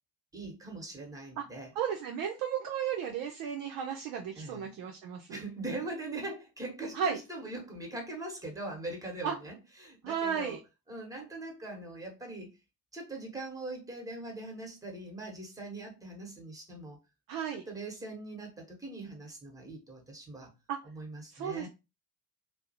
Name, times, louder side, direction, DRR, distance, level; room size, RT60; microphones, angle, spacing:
voice 1, 0.3-1.7 4.4-4.7 5.3-10.6 10.9-12.5 12.9-17.0 17.5-20.5 20.8-21.7, right 2 dB, 5° right, 1.0 m, -41 dB
voice 2, 1.8-5.4 6.9-7.2 9.2-9.4 10.0-10.6 17.3-17.6 20.7-20.8 21.3-21.7, right 8 dB, 45° right, 0.5 m, -34 dB
2.3 x 2.0 x 2.7 m
figure-of-eight pair, 50°, 48 cm